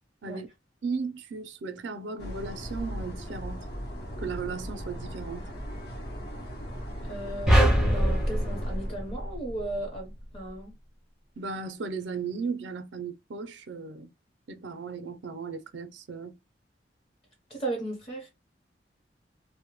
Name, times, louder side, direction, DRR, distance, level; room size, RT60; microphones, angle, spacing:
voice 1, 0.8-3.7 4.2-5.5 11.4-14.1 14.5-16.4, right 4 dB, 80° right, 0.5 m, -36 dB
sound 1, 2.2-9.3, equal, 60° left, 0.8 m, -38 dB
voice 2, 7.0-10.7 17.5-18.3, right 2 dB, 35° left, 0.8 m, -36 dB
sound 2, 7.5-9.9, equal, 5° right, 0.5 m, -23 dB
2.1 x 2.1 x 3.0 m
head